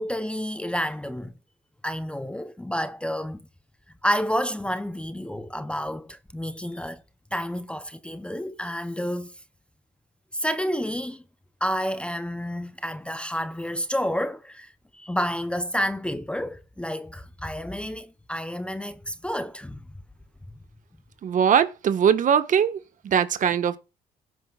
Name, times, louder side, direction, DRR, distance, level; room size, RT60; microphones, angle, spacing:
voice 1, 0.0-1.3 1.8-3.4 4.0-7.0 7.3-9.3 10.3-11.2 11.6-19.8, equal, 5° left, 0.7 m, -30 dB
voice 2, 21.2-23.8, right 8 dB, 50° right, 1.5 m, -21 dB
17.5 x 9.7 x 2.4 m
cardioid pair, 110°, 17 cm